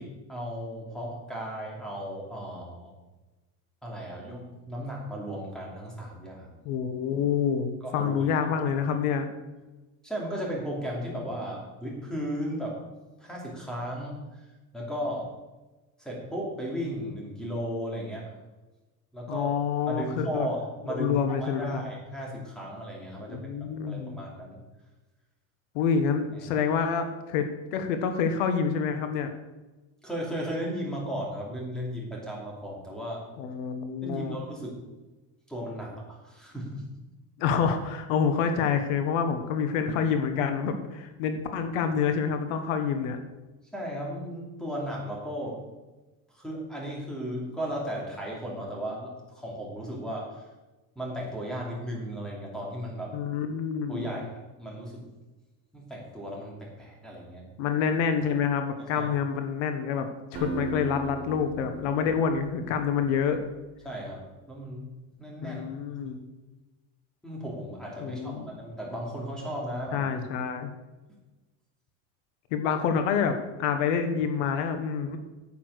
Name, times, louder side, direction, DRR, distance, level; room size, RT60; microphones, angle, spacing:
voice 1, 0.0-2.9 3.8-6.6 7.8-8.3 10.0-12.8 13.2-14.5 14.7-15.4 16.0-18.3 19.1-19.5 19.9-24.6 26.3-26.4 30.0-33.2 34.0-34.8 35.5-36.9 43.7-45.7 46.3-50.5 50.9-53.2 53.9-55.1 55.7-57.5 58.8-59.1 63.8-64.9 65.2-65.6 66.0-66.1 67.2-70.1, equal, ahead, -3 dB, 2.8 m, -35 dB
voice 2, 6.6-9.3 19.3-20.5 20.9-21.8 23.2-24.2 25.7-27.5 27.7-29.3 33.4-34.4 37.4-43.2 53.1-54.2 57.6-63.4 65.4-66.2 68.0-68.5 69.9-70.7 72.5-75.2, left 6 dB, 80° left, 7 dB, 1.5 m, -27 dB
Acoustic guitar, 60.3-63.4, right 2 dB, 30° right, 3.6 m, -38 dB
9.1 x 8.6 x 6.5 m, 1.1 s
cardioid pair, 165°, 38 cm